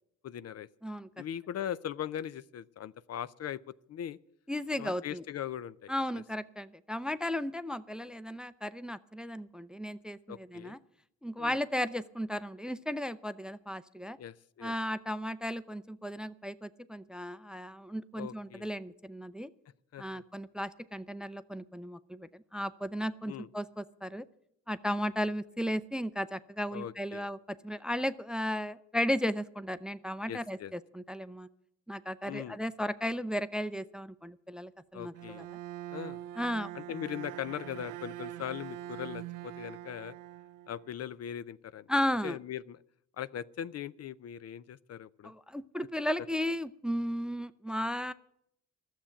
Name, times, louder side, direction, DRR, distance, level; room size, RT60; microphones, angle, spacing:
voice 1, 0.2-0.7 1.2-3.6 3.9-4.2 4.8-5.9 10.3-10.8 11.4-11.6 14.2-14.7 18.2-18.7 19.9-20.2 23.3-23.5 26.7-27.3 30.3-30.7 32.3-32.6 34.9-35.5 35.9-36.2 36.7-40.1 40.7-41.9 42.2-42.8 43.2-45.3, left 10 dB, 50° left, 17 dB, 0.5 m, -40 dB
voice 2, 4.5-5.2 5.9-10.8 11.2-14.2 14.6-19.5 20.0-24.3 24.7-31.5 31.9-35.6 36.4-36.7 41.9-42.4 45.2-48.1, equal, 5° right, 14 dB, 0.4 m, -35 dB
Bowed string instrument, 35.1-41.1, right 14 dB, 75° right, 0.6 m, -43 dB
12.5 x 7.3 x 10.0 m, 0.77 s
cardioid pair, 85°, 32 cm